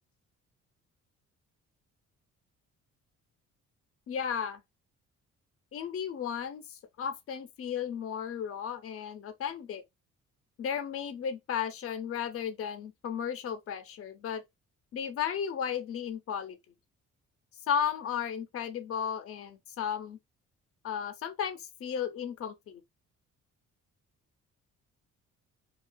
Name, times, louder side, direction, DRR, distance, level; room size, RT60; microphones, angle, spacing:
voice 1, 4.1-4.6 5.7-9.8 10.6-14.4 14.9-16.6 17.7-20.2 20.8-22.8, left 8 dB, 50° left, 0.6 m, -34 dB
2.5 x 2.3 x 2.2 m
cardioid pair, 90°, 30 cm